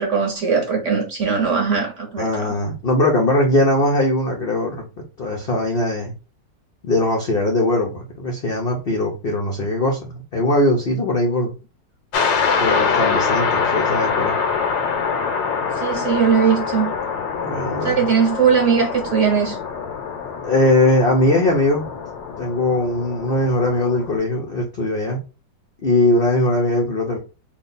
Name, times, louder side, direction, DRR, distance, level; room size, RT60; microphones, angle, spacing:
voice 1, 0.0-2.5 15.7-16.9 17.8-19.6, right 6 dB, 50° right, 1.0 m, -19 dB
voice 2, 2.2-4.8 5.2-6.1 6.8-11.5 12.6-14.3 17.4-18.0 20.4-21.9 22.4-25.2 25.8-27.2, left 1 dB, 65° left, 0.5 m, -20 dB
sound 1, 12.1-24.2, left 5 dB, 85° left, 1.4 m, -24 dB
3.2 x 2.3 x 3.8 m
omnidirectional pair, 1.9 m